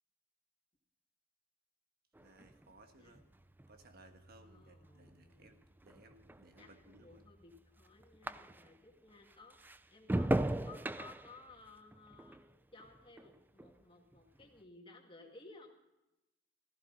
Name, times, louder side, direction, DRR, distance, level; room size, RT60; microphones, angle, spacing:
sound 1, 2.1-8.9 9.3-13.8 14.1-14.6, right 1 dB, 10° right, 0.4 m, -40 dB
voice 1, 2.2-3.2 3.7-7.3, right 2 dB, 55° right, 6 dB, 1.4 m, -61 dB
voice 2, 4.4-5.6 6.6-12.4 12.7-15.8, left 3 dB, 25° left, 2 dB, 2.1 m, -58 dB
15.0 x 15.0 x 4.0 m, 0.95 s
head